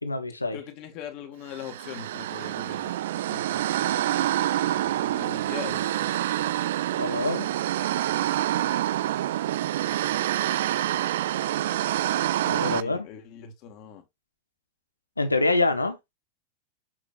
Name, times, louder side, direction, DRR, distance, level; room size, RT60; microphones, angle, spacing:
voice 1, 0.0-0.6 7.0-7.5 12.4-13.1 15.2-16.0, left 3 dB, 80° left, 1.2 m, -25 dB
voice 2, 0.5-2.9 3.3-3.6 4.7-5.9 12.6-14.0, left 8 dB, 40° left, 2.1 m, -41 dB
sound 1, 1.5-12.8, right 13 dB, 55° right, 0.3 m, -27 dB
7.7 x 6.0 x 2.6 m
figure-of-eight pair, 90°, 0 cm